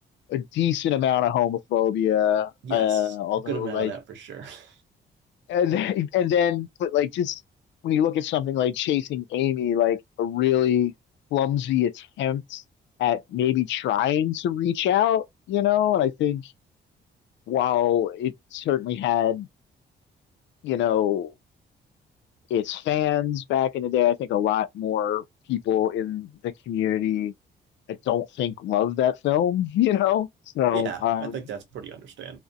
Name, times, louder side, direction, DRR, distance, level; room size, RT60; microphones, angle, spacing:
voice 1, 0.3-3.9 5.5-7.4 7.8-10.9 11.3-12.6 13.0-16.5 17.5-19.5 20.6-21.3 22.5-27.3 27.9-30.3 30.5-31.3, left 11 dB, 85° left, 0.4 m, -24 dB
voice 2, 2.6-3.2 3.5-4.8 30.7-32.4, right 8 dB, 85° right, 0.8 m, -36 dB
2.4 x 2.0 x 2.6 m
cardioid pair, 175°, 19 cm